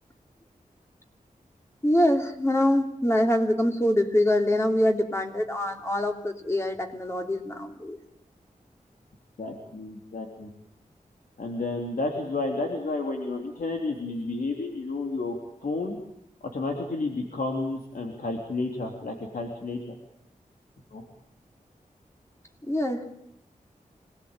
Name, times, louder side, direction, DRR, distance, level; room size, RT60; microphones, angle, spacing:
voice 1, 1.8-8.0 22.6-23.0, left 1 dB, 20° left, 3 dB, 3.1 m, -24 dB
voice 2, 9.4-10.5 11.4-15.4 15.6-16.0 16.5-19.9 20.9-21.1, left 3 dB, 80° left, 1 dB, 3.5 m, -31 dB
26.0 x 19.5 x 9.1 m, 0.75 s
wide cardioid pair, 110°, 14 cm